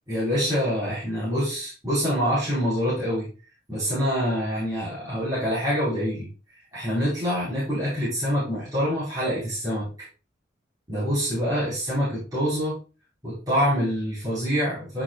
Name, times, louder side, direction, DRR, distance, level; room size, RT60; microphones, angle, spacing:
voice 1, 0.1-3.3 3.7-6.3 6.7-9.9 10.9-12.8 13.2-15.0, equal, 20° right, -10 dB, 4.6 m, -25 dB
9.9 x 6.3 x 2.4 m, 0.34 s
head